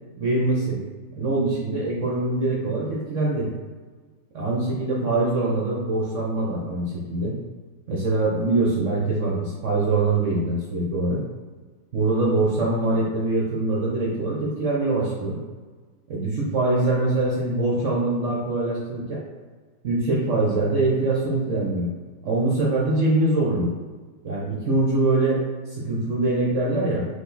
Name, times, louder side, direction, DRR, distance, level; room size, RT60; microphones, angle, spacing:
voice 1, 0.2-0.8 1.1-3.5 4.3-7.4 7.9-11.2 11.9-15.4 16.1-19.2 19.8-21.9 22.2-23.7 24.2-27.1, right 2 dB, 60° right, -4 dB, 0.8 m, -23 dB
5.1 x 2.5 x 3.9 m, 1.4 s
omnidirectional pair, 2.2 m